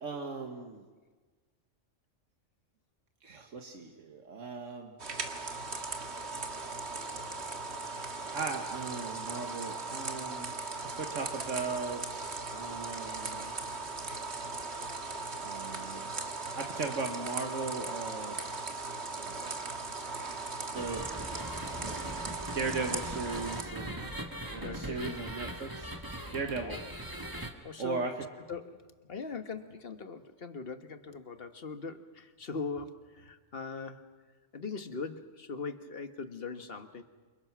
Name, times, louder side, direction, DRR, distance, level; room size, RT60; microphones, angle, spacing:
voice 1, 0.0-0.8 3.2-5.0 7.9-10.5 10.8-13.5 15.4-16.1 16.5-18.4 19.1-19.7 20.7-21.1 21.8-24.1 24.5-25.9 26.3-26.8 27.8-28.1, right 4 dB, 85° right, 3 dB, 1.9 m, -38 dB
sound 1, 5.0-23.6, right 3 dB, 60° right, 2.1 m, -38 dB
sound 2, 20.8-27.5, right 1 dB, 15° right, 1.9 m, -41 dB
voice 2, 24.5-25.2 26.6-26.9 27.6-28.1 28.5-34.1 34.5-37.0, left 4 dB, 50° left, 9 dB, 1.5 m, -40 dB
29.5 x 27.5 x 6.1 m, 1.4 s
omnidirectional pair, 1.3 m